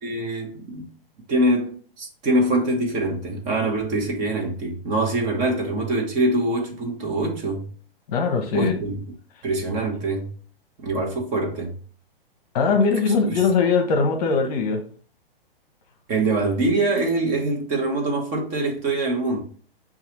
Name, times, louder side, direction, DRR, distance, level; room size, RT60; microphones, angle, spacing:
voice 1, 0.0-0.9 1.3-7.6 8.5-8.9 9.4-10.3 10.8-11.7 13.3-13.4 16.1-19.4, right 2 dB, 25° right, 1.0 m, -24 dB
voice 2, 8.1-8.8 12.5-14.8, left 4 dB, 40° left, 0.9 m, -20 dB
6.6 x 2.4 x 2.9 m
figure-of-eight pair, 115°, 30 cm